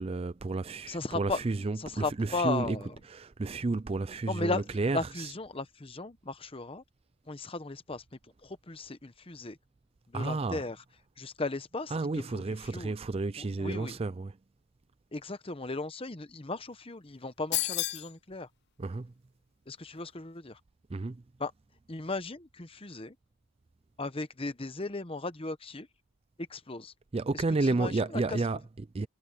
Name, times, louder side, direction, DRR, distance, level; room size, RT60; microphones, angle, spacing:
voice 1, 0.0-2.8 3.1-5.3 10.1-10.6 11.9-14.4 18.8-19.1 20.9-21.2 27.1-29.1, right 3 dB, 25° right, 0.4 m, -31 dB
voice 2, 0.9-1.4 1.8-2.9 4.3-4.6 4.9-6.8 7.3-9.6 10.1-10.8 11.2-12.4 12.7-12.9 13.4-14.0 15.1-18.5 19.7-20.6 21.4-21.5 21.9-23.2 24.0-25.9 26.4-26.9 27.3-27.4 27.7-28.4, left 3 dB, 25° left, 0.9 m, -36 dB
sound 1, 17.5-18.1, left 15 dB, 50° left, 0.6 m, -30 dB
head